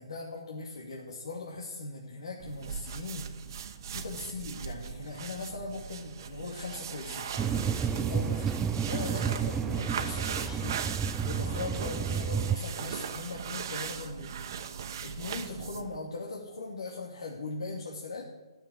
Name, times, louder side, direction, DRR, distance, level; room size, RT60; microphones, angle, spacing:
voice 1, 0.0-3.6 3.9-7.3 7.7-8.4 8.8-10.8 11.2-14.4 15.0-18.3, left 3 dB, 80° left, -2 dB, 2.5 m, -39 dB
sound 1, 2.4-16.0, right 7 dB, 45° right, 1.2 m, -39 dB
Inside train start cruise and stop, 7.4-12.6, right 7 dB, 10° right, 0.4 m, -31 dB
13.0 x 7.7 x 9.5 m, 1.2 s
hypercardioid pair, 160°, 3 cm